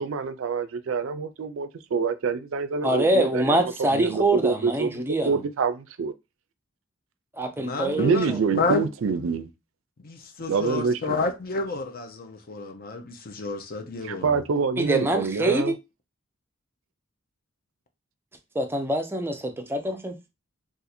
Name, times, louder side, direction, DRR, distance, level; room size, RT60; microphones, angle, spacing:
voice 1, 0.0-6.1 8.0-9.5 10.5-11.2 14.0-15.7, right 5 dB, 70° right, 0.4 m, -26 dB
voice 2, 2.8-5.3 7.4-8.2 14.8-15.7 18.5-20.1, right 1 dB, 10° right, 0.5 m, -24 dB
voice 3, 7.6-8.9 10.0-14.4, left 3 dB, 45° left, 0.6 m, -30 dB
2.6 x 2.5 x 4.1 m
head